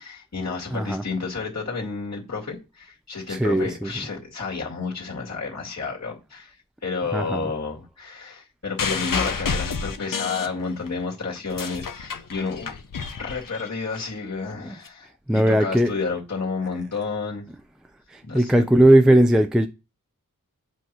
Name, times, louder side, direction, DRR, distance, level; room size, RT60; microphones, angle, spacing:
voice 1, 0.0-6.6 6.8-12.8 13.2-17.5 18.2-18.7, left 4 dB, 50° left, 2.2 m, -31 dB
voice 2, 0.7-1.0 3.3-3.9 7.1-7.5 14.6-14.7 15.3-15.9 18.1-19.7, right 1 dB, ahead, 0.4 m, -18 dB
sound 1, 8.8-11.0 11.4-14.0 14.9-15.0, left 5 dB, 70° left, 0.8 m, -29 dB
7.9 x 2.9 x 6.0 m
wide cardioid pair, 70°, 34 cm